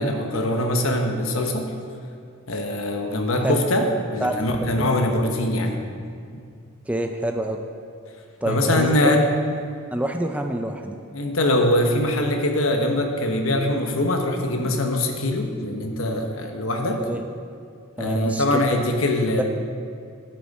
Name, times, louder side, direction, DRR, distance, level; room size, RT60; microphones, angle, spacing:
voice 1, 0.0-1.7 2.5-5.8 8.5-9.3 11.1-17.0 18.0-19.4, left 1 dB, 85° left, 3 dB, 1.1 m, -22 dB
voice 2, 6.9-7.6 8.4-9.1 9.9-11.0 17.0-17.2 18.0-18.6 19.4-19.5, right 1 dB, 5° right, 4 dB, 0.4 m, -26 dB
11.0 x 9.1 x 4.2 m, 2.3 s
head